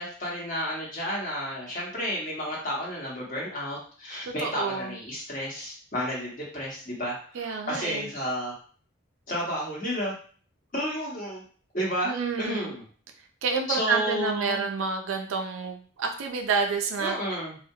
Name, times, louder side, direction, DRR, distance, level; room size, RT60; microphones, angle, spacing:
voice 1, 0.0-8.5 9.3-10.1 10.7-11.4 11.7-12.8 13.7-14.6 17.0-17.6, equal, 40° left, -5 dB, 0.9 m, -31 dB
voice 2, 4.2-5.0 7.3-8.1 12.0-12.7 13.4-17.2, right 5 dB, 70° right, 3 dB, 0.4 m, -29 dB
2.2 x 2.1 x 2.7 m, 0.43 s
head